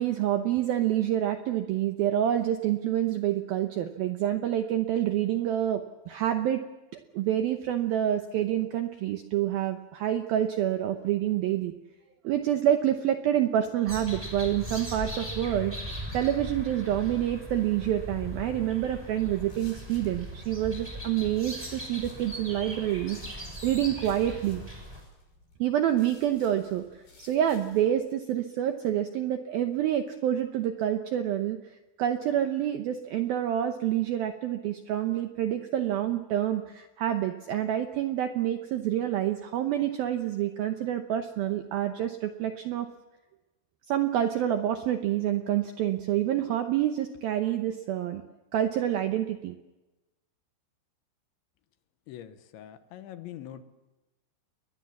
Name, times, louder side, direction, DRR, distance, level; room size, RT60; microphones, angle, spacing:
voice 1, 0.0-6.6 7.1-11.7 12.2-15.8 16.1-24.6 25.6-26.9 27.2-31.6 32.0-42.9 43.9-48.2 48.5-49.6, right 11 dB, 80° right, 7 dB, 2.2 m, -27 dB
sound 1, 13.9-25.0, equal, 5° right, 5.6 m, -39 dB
sound 2, 19.3-27.9, left 3 dB, 50° left, 7.7 m, -58 dB
voice 2, 52.1-53.6, left 11 dB, 80° left, 10 dB, 3.4 m, -43 dB
28.5 x 21.5 x 7.3 m, 1.1 s
omnidirectional pair, 5.5 m